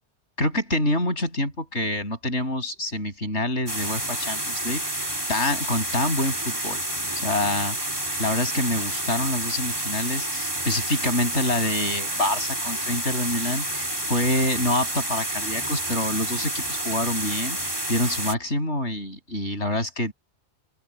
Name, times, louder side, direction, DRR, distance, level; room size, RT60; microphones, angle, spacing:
voice 1, 0.4-5.0 5.3-6.8 7.2-7.8 8.2-20.1, left 1 dB, 80° left, 8.5 m, -26 dB
sound 1, 3.7-18.3, right 1 dB, 20° right, 3.4 m, -29 dB
open air
omnidirectional pair, 1.2 m